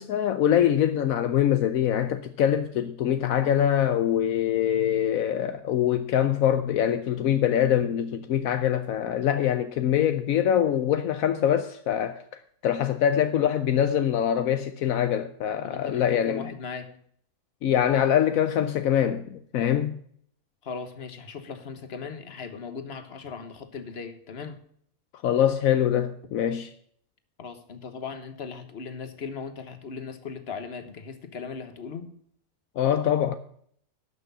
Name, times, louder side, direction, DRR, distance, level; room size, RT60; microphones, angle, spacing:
voice 1, 0.0-16.5 17.6-20.0 25.2-26.7 32.8-33.4, left 10 dB, 75° left, 1.1 m, -24 dB
voice 2, 15.6-16.9 20.6-24.6 27.4-32.1, left 5 dB, 50° left, 1.5 m, -38 dB
12.0 x 6.3 x 6.8 m
omnidirectional pair, 1.5 m